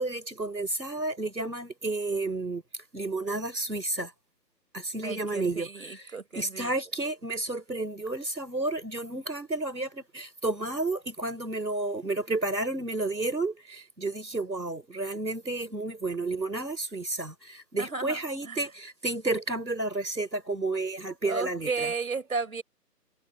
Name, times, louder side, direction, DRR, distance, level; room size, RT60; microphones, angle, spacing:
voice 1, 0.0-2.6 2.9-4.1 4.7-21.9, right 2 dB, 90° right, 4.3 m, -31 dB
voice 2, 5.0-6.7 17.8-18.6 21.2-22.6, right 4 dB, 55° right, 4.3 m, -34 dB
figure-of-eight pair, 155°, 50 cm